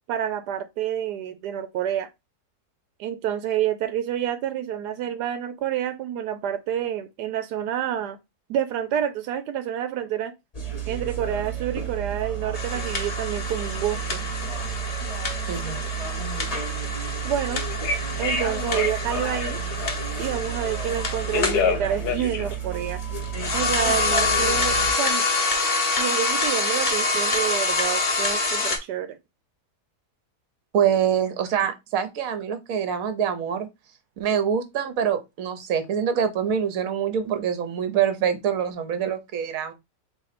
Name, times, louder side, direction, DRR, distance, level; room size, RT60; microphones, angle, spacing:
voice 1, 0.1-2.1 3.0-8.2 8.5-10.3 10.9-14.2 17.2-17.6 18.2-19.6 20.2-23.0 23.5-25.2 26.0-29.2, right 10 dB, 85° right, 1.2 m, -28 dB
sound 1, 10.5-24.9, right 7 dB, 25° left, 1.1 m, -31 dB
sound 2, 12.5-21.7 23.2-28.8, left 3 dB, 45° left, 1.1 m, -26 dB
voice 2, 15.5-15.8 30.7-33.7 34.2-39.7, right 8 dB, 60° right, 1.2 m, -25 dB
Telephone, 17.7-20.2 21.0-23.4, left 6 dB, 80° left, 1.4 m, -28 dB
3.9 x 3.2 x 4.1 m
omnidirectional pair, 1.7 m